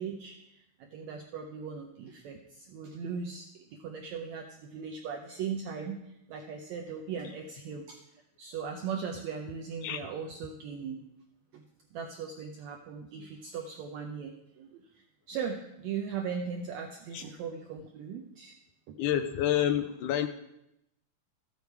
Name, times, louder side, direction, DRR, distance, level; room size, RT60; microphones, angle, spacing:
voice 1, 0.0-8.0 8.4-11.0 11.5-11.6 11.9-18.6 18.9-19.0, right 6 dB, 75° right, 3 dB, 1.7 m, -39 dB
voice 2, 19.0-20.3, left 11 dB, 80° left, 9 dB, 2.0 m, -28 dB
14.0 x 7.1 x 4.6 m, 0.83 s
omnidirectional pair, 3.8 m